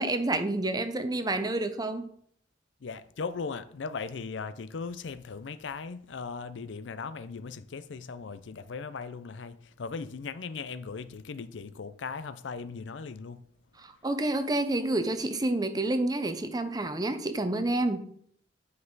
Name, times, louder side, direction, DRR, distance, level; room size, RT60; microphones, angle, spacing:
voice 1, 0.0-2.1 13.8-18.1, right 2 dB, 20° right, 0.7 m, -29 dB
voice 2, 2.8-13.5, left 5 dB, 75° left, 0.5 m, -38 dB
10.0 x 5.4 x 3.9 m
head